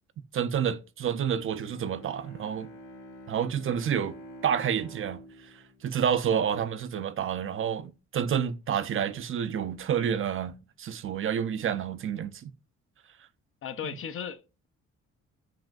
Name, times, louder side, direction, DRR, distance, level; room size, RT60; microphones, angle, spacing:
voice 1, 0.3-2.7 3.3-4.1 4.4-12.5, right 8 dB, 45° right, 0.4 m, -29 dB
Bowed string instrument, 1.7-7.0, equal, 90° left, 1.0 m, -48 dB
voice 2, 13.6-14.7, left 8 dB, 45° left, 0.5 m, -37 dB
5.9 x 2.5 x 2.3 m
cardioid pair, 90°, 30 cm